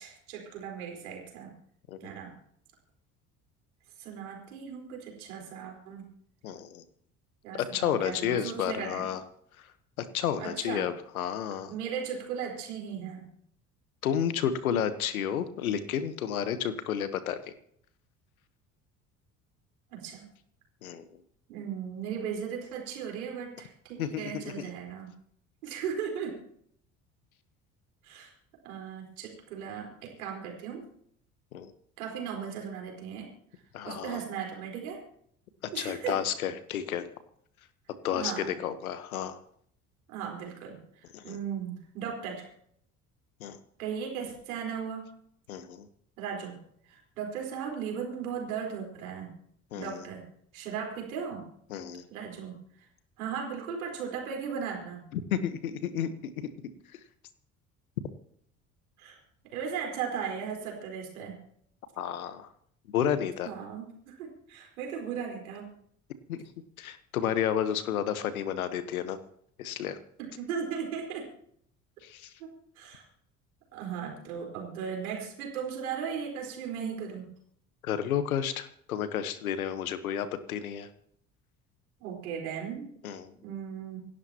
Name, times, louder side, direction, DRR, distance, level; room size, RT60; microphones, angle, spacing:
voice 1, 0.0-1.5 2.0-2.3 4.0-6.1 7.4-9.1 10.4-10.9 11.7-13.2 19.9-20.3 21.5-25.1 25.6-26.4 28.0-28.3 28.6-30.8 32.0-33.3 33.8-35.0 35.7-36.2 38.1-38.5 40.1-42.4 43.8-45.0 46.2-46.6 46.8-49.3 49.7-50.2 50.5-51.4 52.1-52.5 53.2-55.0 59.0-59.2 59.5-61.3 63.4-65.7 70.2-71.2 72.4-72.5 72.8-73.0 73.7-77.3 82.0-82.9 83.4-84.0, right 7 dB, 85° right, 0 dB, 4.5 m, -37 dB
voice 2, 6.4-6.8 7.5-9.2 10.0-11.7 14.0-17.4 20.8-21.2 24.0-24.7 31.5-31.7 33.7-34.2 35.7-37.1 38.0-39.4 41.1-41.4 43.4-43.6 45.5-45.9 49.7-50.0 51.7-52.1 55.1-56.1 56.4-56.5 62.0-62.5 62.9-63.5 66.3-66.4 66.8-69.2 69.6-70.0 72.0-72.3 77.8-80.9 83.0-83.3, left 9 dB, 85° left, 12 dB, 1.3 m, -31 dB
27.5 x 12.0 x 2.9 m, 0.67 s
hypercardioid pair, 60°, 41 cm